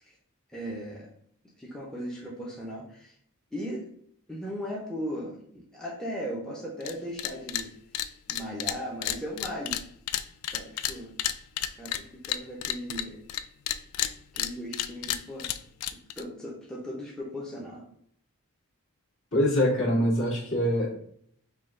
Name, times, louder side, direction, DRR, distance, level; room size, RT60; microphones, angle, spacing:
voice 1, 0.5-1.1 1.6-3.1 3.5-3.9 4.3-7.7 8.3-9.8 10.5-11.1 11.8-13.2 14.3-15.5 16.2-17.8 19.5-19.6, equal, 5° left, -3 dB, 0.7 m, -37 dB
sound 1, 6.8-6.9 7.2-7.6 7.9-13.4 13.7-16.2, left 11 dB, 80° left, 0.3 m, -31 dB
voice 2, 19.3-21.0, equal, 60° left, -6 dB, 1.9 m, -24 dB
5.3 x 2.3 x 3.7 m, 0.66 s
head